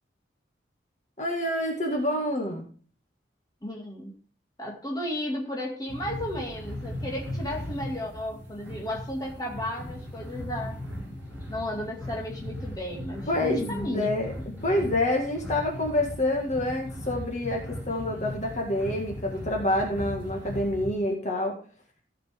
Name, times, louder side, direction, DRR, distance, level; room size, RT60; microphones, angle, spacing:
voice 1, 1.2-2.6 13.3-14.3 14.6-21.6, left 1 dB, 40° left, 0 dB, 1.9 m, -27 dB
voice 2, 3.6-4.1 4.6-10.8 11.5-14.1 14.8-14.9, left 1 dB, 20° left, -1 dB, 2.1 m, -34 dB
sound 1, 5.9-20.9, left 1 dB, 10° right, 5.4 m, -38 dB
15.0 x 5.9 x 3.6 m, 0.41 s
head